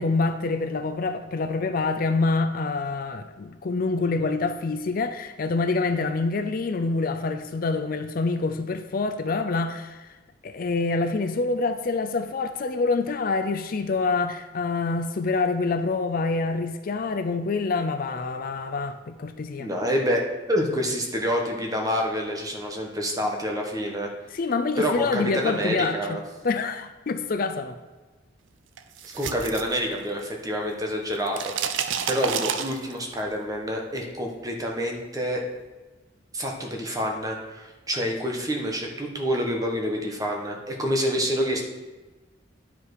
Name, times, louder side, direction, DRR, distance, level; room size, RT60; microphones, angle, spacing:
voice 1, 0.0-10.2 10.4-19.7 24.3-27.8, left 3 dB, 50° left, 8 dB, 0.4 m, -26 dB
voice 2, 19.6-24.1 24.8-26.2 29.0-35.4 36.3-41.6, equal, 20° right, 1 dB, 1.2 m, -27 dB
sound 1, 28.8-30.5 30.7-33.2, right 7 dB, 85° right, 0.6 m, -30 dB
10.0 x 5.1 x 4.8 m, 1.2 s
head